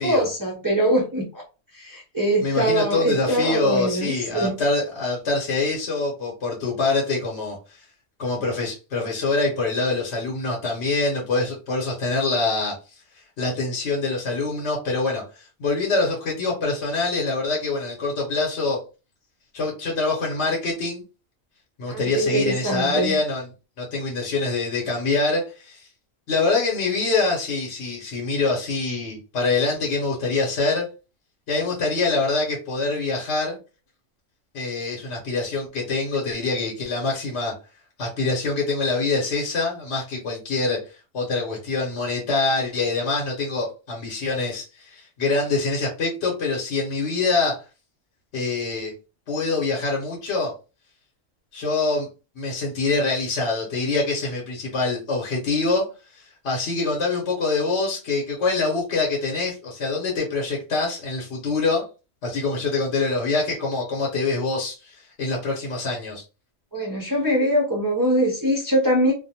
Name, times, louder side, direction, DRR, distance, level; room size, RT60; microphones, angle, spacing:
voice 1, 0.0-1.4 1.7-4.6 21.9-23.2 66.7-69.1, right 1 dB, 30° right, -3 dB, 0.4 m, -23 dB
voice 2, 2.4-7.8 8.2-13.0 13.4-18.8 19.5-21.0 21.8-23.5 23.8-25.9 26.3-30.9 31.5-33.6 34.5-37.5 38.0-40.8 41.1-47.6 48.3-48.9 49.3-50.5 51.5-52.1 52.4-55.8 56.1-61.8 62.2-66.2, left 3 dB, 60° left, -2 dB, 1.0 m, -25 dB
2.5 x 2.1 x 2.7 m, 0.31 s
omnidirectional pair, 1.4 m